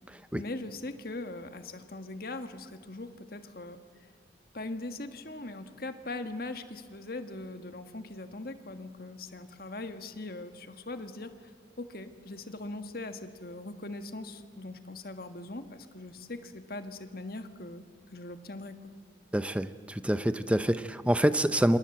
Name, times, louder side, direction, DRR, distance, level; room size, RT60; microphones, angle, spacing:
voice 1, 0.3-3.8 4.5-11.5 11.8-17.8 18.1-18.8, left 2 dB, 50° left, 8 dB, 1.6 m, -40 dB
voice 2, 19.3-21.8, equal, 5° right, 12 dB, 0.7 m, -26 dB
27.0 x 27.0 x 7.9 m, 2.1 s
head